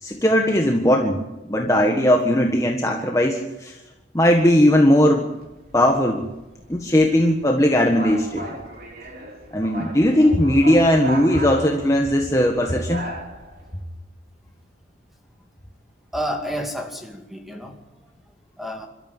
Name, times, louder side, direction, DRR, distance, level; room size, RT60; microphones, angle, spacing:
voice 1, 0.0-1.2 1.5-3.7 4.1-5.3 5.7-6.2 6.7-8.5 9.5-13.0, left 1 dB, 15° left, 1.6 m, -18 dB
sound 1, 5.3-13.8, right 1 dB, 50° right, 3.9 m, -37 dB
voice 2, 16.1-17.8 18.6-18.9, equal, ahead, 2.5 m, -30 dB
27.5 x 13.5 x 9.2 m
head